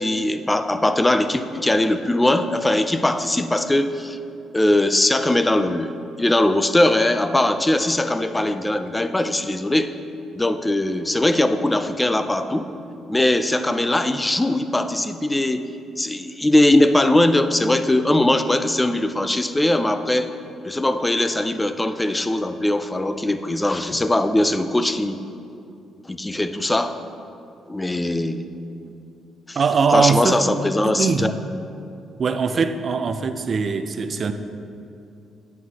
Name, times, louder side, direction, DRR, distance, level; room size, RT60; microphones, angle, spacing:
voice 1, 0.0-4.2 4.5-9.9 10.4-12.7 13.1-15.7 16.0-20.3 20.6-25.2 26.1-27.0 27.7-28.4 29.5-29.6 29.9-31.3 32.5-32.6, left 1 dB, 15° left, 10 dB, 0.4 m, -20 dB
voice 2, 29.6-30.4 30.8-31.3 32.2-34.3, right 5 dB, 45° right, 8 dB, 0.5 m, -21 dB
9.2 x 8.1 x 2.9 m, 2.6 s
cardioid pair, 90°, 0 cm